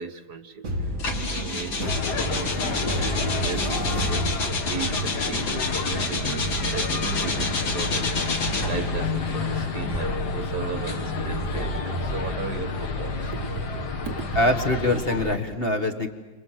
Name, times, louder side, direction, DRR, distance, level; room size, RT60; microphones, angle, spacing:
voice 1, 0.0-14.2, right 6 dB, 60° right, 8 dB, 1.6 m, -36 dB
sound 1, 0.6-5.1, equal, 45° right, 2.3 m, -32 dB
sound 2, 1.0-8.9 9.8-12.2, left 4 dB, 80° left, 3.3 m, -30 dB
sound 3, 1.8-15.4, left 2 dB, 55° left, 2.4 m, -29 dB
voice 2, 14.3-16.1, left 1 dB, 30° left, 5 dB, 1.7 m, -23 dB
29.5 x 26.0 x 7.7 m, 1.1 s
omnidirectional pair, 2.1 m